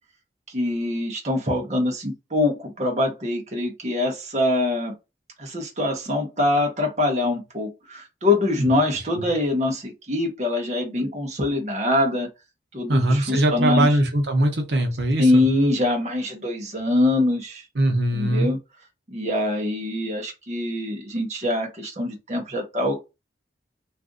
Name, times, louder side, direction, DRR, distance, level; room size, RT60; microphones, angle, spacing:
voice 1, 0.5-4.9 5.4-12.3 12.7-13.9 15.2-17.6 18.1-18.6 19.1-23.1, left 2 dB, 40° right, 0.8 m, -24 dB
voice 2, 12.9-15.4 17.7-18.5, right 1 dB, 80° right, 0.8 m, -21 dB
2.5 x 2.4 x 3.7 m
head